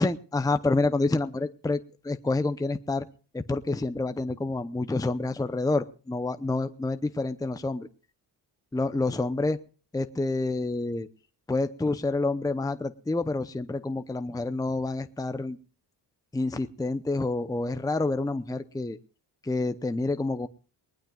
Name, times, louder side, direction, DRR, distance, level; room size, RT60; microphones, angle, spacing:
voice 1, 0.0-3.1 3.3-7.9 8.7-9.6 9.9-11.1 11.5-15.6 16.3-19.0 19.4-20.5, left 2 dB, 10° left, 9 dB, 0.7 m, -28 dB
20.5 x 19.5 x 2.4 m, 0.38 s
wide cardioid pair, 135°, 42 cm